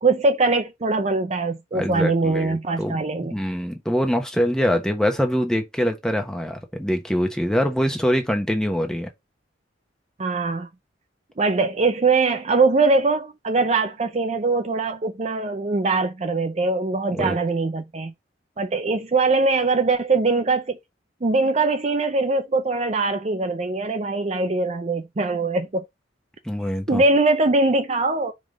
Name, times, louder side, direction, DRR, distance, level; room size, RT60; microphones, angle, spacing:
voice 1, 0.0-3.3 10.2-10.7 11.4-18.1 18.6-20.8 21.2-25.8 26.9-28.3, right 3 dB, 35° right, 0.5 m, -22 dB
voice 2, 1.7-9.1 17.1-17.4 26.4-27.0, equal, 5° left, 1.1 m, -24 dB
4.9 x 3.8 x 5.1 m
head